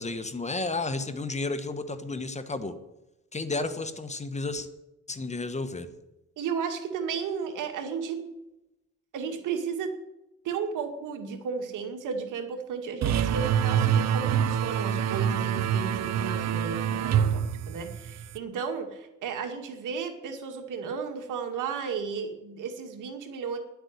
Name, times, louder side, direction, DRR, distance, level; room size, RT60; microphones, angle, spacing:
voice 1, 0.0-2.7 3.3-4.7 5.1-5.9, left 3 dB, 20° left, 10 dB, 1.3 m, -32 dB
voice 2, 6.4-8.2 9.1-9.9 10.4-23.6, right 6 dB, 85° right, 5 dB, 2.2 m, -34 dB
sound 1, 13.0-18.4, right 8 dB, 60° right, 0.7 m, -26 dB
11.0 x 8.3 x 9.8 m, 0.93 s
cardioid pair, 105°, 30 cm